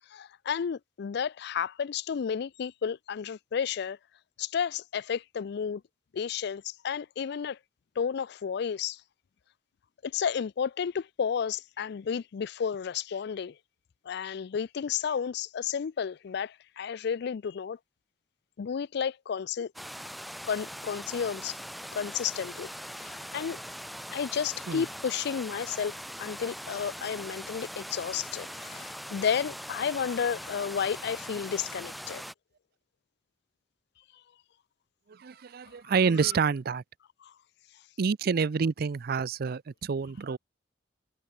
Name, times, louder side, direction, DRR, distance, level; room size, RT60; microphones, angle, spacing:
voice 1, 0.1-4.0 4.4-5.8 6.1-7.6 8.0-9.0 10.0-13.6 14.1-17.8 18.6-19.7 20.5-21.6 21.9-22.7 23.0-23.6 24.1-32.2 37.2-37.3, left 7 dB, 60° left, 0.4 m, -32 dB
sound 1, 19.8-32.3, equal, ahead, 1.2 m, -41 dB
voice 2, 35.1-36.8 38.0-40.4, right 5 dB, 55° right, 0.5 m, -28 dB
head